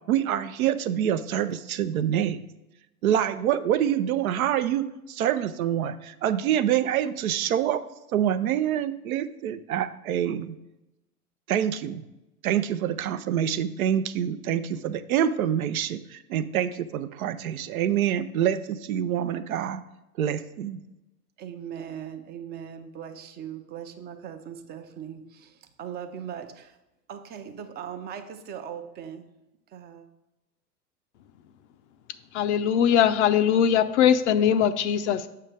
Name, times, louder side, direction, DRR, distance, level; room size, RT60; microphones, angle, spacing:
voice 1, 0.1-2.4 3.0-7.8 8.1-10.6 11.5-12.1 12.4-19.8 20.2-20.8, right 10 dB, 65° right, 12 dB, 0.6 m, -26 dB
voice 2, 21.4-26.8 27.1-29.3 29.7-30.1, right 8 dB, 20° right, 8 dB, 0.5 m, -39 dB
voice 3, 32.3-35.3, left 9 dB, 50° left, 12 dB, 0.5 m, -21 dB
7.6 x 5.7 x 3.3 m, 0.95 s
hypercardioid pair, 100°, 46 cm